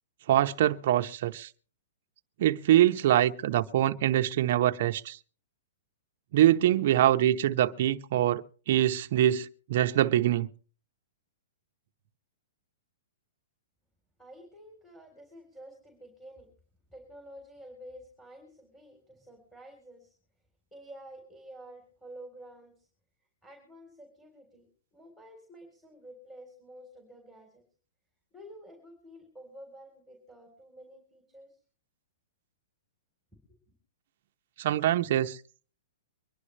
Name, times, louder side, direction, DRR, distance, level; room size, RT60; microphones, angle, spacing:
voice 1, 0.3-1.5 2.4-5.2 6.3-10.5 34.6-35.4, right 12 dB, 55° right, 0.8 m, -24 dB
voice 2, 14.2-16.5 16.9-20.1 20.7-22.9 23.4-27.6 28.3-31.6 33.5-33.6, right 1 dB, 5° left, 3.6 m, -50 dB
24.0 x 11.0 x 3.2 m
hypercardioid pair, 155°, 0 cm